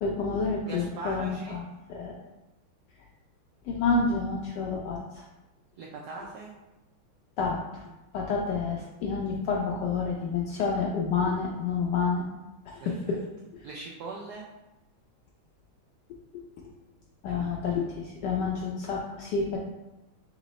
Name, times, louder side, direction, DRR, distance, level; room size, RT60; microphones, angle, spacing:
voice 1, 0.0-1.6 1.9-2.1 3.6-5.2 7.4-7.9 8.1-12.2 12.7-13.2 13.5-13.7 16.3-16.4 17.2-19.6, left 4 dB, 80° left, -1 dB, 0.9 m, -29 dB
voice 2, 0.7-1.6 5.8-6.5 12.8-13.2 13.6-14.5 17.3-17.7, right 3 dB, 80° right, -1 dB, 0.9 m, -40 dB
3.8 x 3.1 x 4.0 m, 1.0 s
omnidirectional pair, 2.3 m